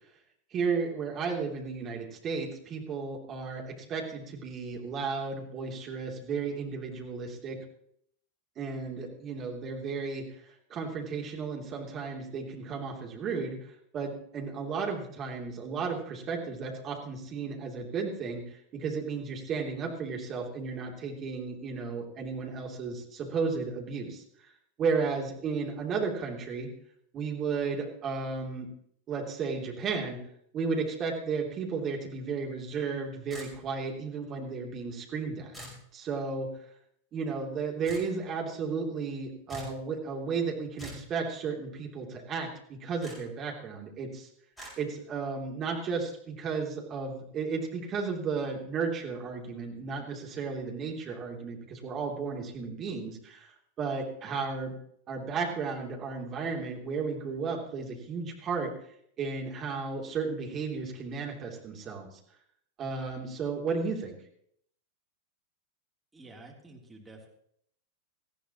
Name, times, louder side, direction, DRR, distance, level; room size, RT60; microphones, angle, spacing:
voice 1, 0.5-7.6 8.6-10.2 10.7-13.6 13.9-24.2 24.8-26.7 27.1-28.7 29.1-30.2 30.5-35.6 35.9-36.5 37.1-44.3 44.8-53.5 53.8-54.7 55.1-58.7 59.2-62.1 62.8-64.2, right 5 dB, 30° right, 1 dB, 3.2 m, -34 dB
sound 1, 33.3-33.9 35.5-35.8 37.9-38.1 39.5-39.8 40.8-41.1 43.0-43.2 44.6-44.7, equal, 10° left, 5.6 m, -44 dB
voice 2, 66.1-67.3, right 2 dB, 10° right, -2 dB, 3.4 m, -50 dB
19.0 x 14.5 x 3.1 m, 0.68 s
figure-of-eight pair, 90°, 0 cm